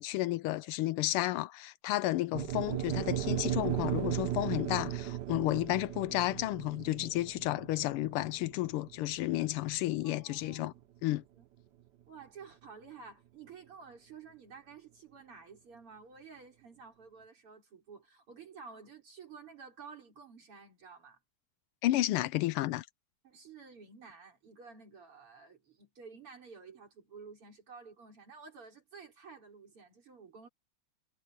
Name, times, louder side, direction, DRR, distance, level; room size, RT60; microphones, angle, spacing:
voice 1, 0.0-10.7 11.0-11.2 21.8-22.9, left 16 dB, 85° left, 1.5 m, -32 dB
sound 1, 2.3-10.6, right 12 dB, 60° right, 1.2 m, -36 dB
voice 2, 10.0-11.5 12.1-21.2 23.2-30.5, right 5 dB, 80° right, 5.6 m, -52 dB
omnidirectional pair, 2.4 m